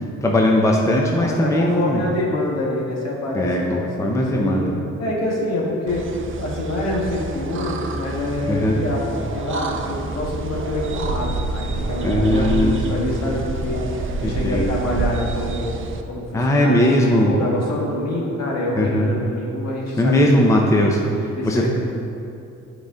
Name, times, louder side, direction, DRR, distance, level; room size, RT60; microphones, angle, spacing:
voice 1, 0.2-2.0 3.3-4.7 8.5-8.8 12.0-13.1 14.2-14.7 16.3-17.3 18.8-19.1 20.0-21.7, left 1 dB, 10° left, 0 dB, 0.6 m, -19 dB
voice 2, 1.1-4.7 5.0-15.7 16.1-20.3 21.4-21.7, left 1 dB, 60° left, -3 dB, 1.7 m, -26 dB
sound 1, 5.9-16.0, right 3 dB, 40° right, 0.5 m, -28 dB
7.9 x 4.8 x 3.8 m, 2.7 s
cardioid pair, 90°, 30 cm